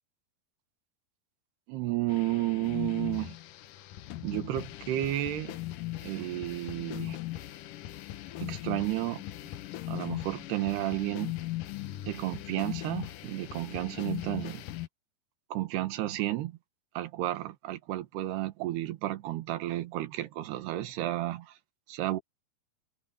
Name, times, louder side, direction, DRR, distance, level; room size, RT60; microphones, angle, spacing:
voice 1, 1.7-3.4 4.2-5.6 6.0-7.2 8.4-9.2 9.9-11.4 12.0-14.6 15.5-16.6 16.9-21.6 21.9-22.2, right 15 dB, 80° right, 3.4 m, -32 dB
sound 1, 2.1-14.9, left 15 dB, 70° left, 2.2 m, -39 dB
omnidirectional pair, 4.7 m